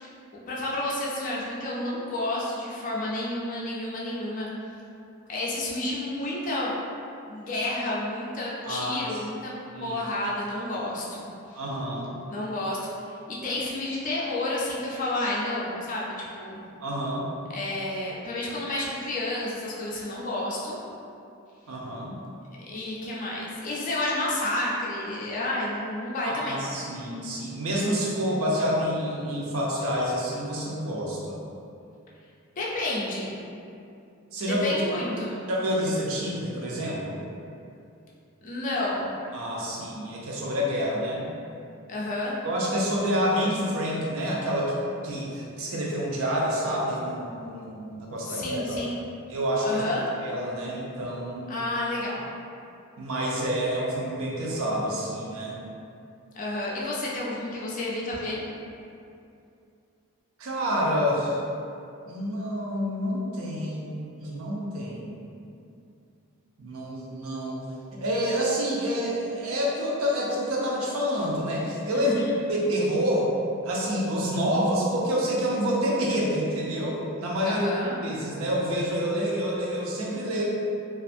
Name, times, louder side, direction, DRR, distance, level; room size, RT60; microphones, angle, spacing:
voice 1, 0.0-4.5 5.3-6.7 7.3-9.5 9.8-11.6 12.3-12.9 13.3-16.7 17.5-20.8 22.6-26.7 32.6-33.4 34.5-35.4 38.4-39.1 41.9-42.4 48.2-48.9 49.6-50.1 51.5-52.3 56.3-58.4 71.9-72.4 77.4-78.0, left 1 dB, 35° left, -5 dB, 0.4 m, -30 dB
voice 2, 8.7-9.0 9.7-10.0 11.5-12.1 16.8-17.3 21.7-22.1 26.2-31.4 34.3-34.8 35.5-37.2 39.3-41.3 42.4-44.8 45.0-48.8 49.3-49.8 50.2-51.5 53.0-55.6 60.4-61.4 62.0-65.1 66.6-67.6 68.0-72.1 72.5-73.3 73.6-77.6 78.0-80.4, equal, 70° right, -4 dB, 0.5 m, -28 dB
2.5 x 2.3 x 2.5 m, 2.6 s
head